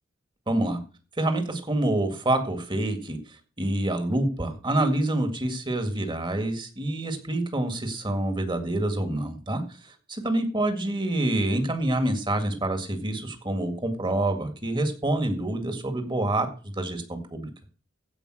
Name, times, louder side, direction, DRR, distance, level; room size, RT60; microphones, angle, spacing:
voice 1, 0.5-0.8 1.2-3.2 3.6-17.5, right 1 dB, 25° right, 7 dB, 2.0 m, -27 dB
15.5 x 5.3 x 6.2 m, 0.37 s
head